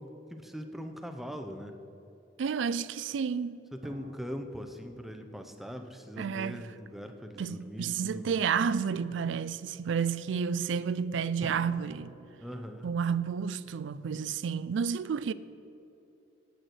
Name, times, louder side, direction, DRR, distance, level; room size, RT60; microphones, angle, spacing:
voice 1, 0.0-1.8 3.7-8.4 12.4-12.9, equal, ahead, 0.7 m, -41 dB
voice 2, 2.4-3.6 6.2-6.6 7.4-12.1 12.8-15.3, right 6 dB, 80° right, 0.4 m, -31 dB
sound 1, 3.8-7.2 11.4-14.7, right 1 dB, 30° right, 0.8 m, -51 dB
9.2 x 8.1 x 6.1 m
head